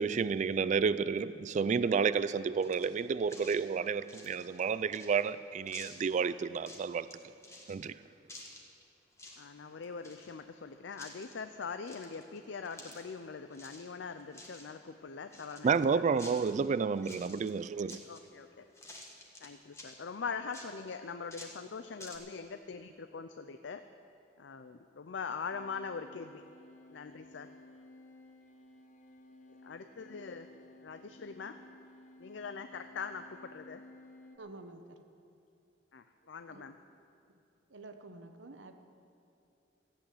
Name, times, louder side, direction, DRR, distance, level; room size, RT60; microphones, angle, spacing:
voice 1, 0.0-7.1 7.7-7.9 15.6-18.0, right 5 dB, 40° right, 15 dB, 0.3 m, -30 dB
sound 1, 2.6-3.0 3.3-3.6 4.0-5.3 5.7-6.1 6.5-7.1 7.4-7.7 8.3-8.8 9.1-9.4 9.7-10.6 10.9-11.3 11.8-13.2 13.5-13.9 14.2-14.7 15.3-16.7 17.0-17.5 17.9-18.5 18.7-20.0 20.5-22.2, left 2 dB, 15° left, 1.5 m, -51 dB
voice 2, 9.4-16.2 18.0-18.7 19.0-19.1 19.4-23.8 24.4-26.4 26.9-27.5 29.5-30.5 30.8-31.6 32.2-33.8 35.9-36.8, left 5 dB, 70° left, 9 dB, 0.5 m, -42 dB
sound 2, 25.5-34.4, left 2 dB, 40° left, 0.8 m, -56 dB
voice 3, 34.4-35.0 36.5-36.6 37.3-37.4 37.7-38.8, right 2 dB, 80° right, 7 dB, 1.1 m, -49 dB
14.5 x 8.4 x 8.4 m, 2.7 s
head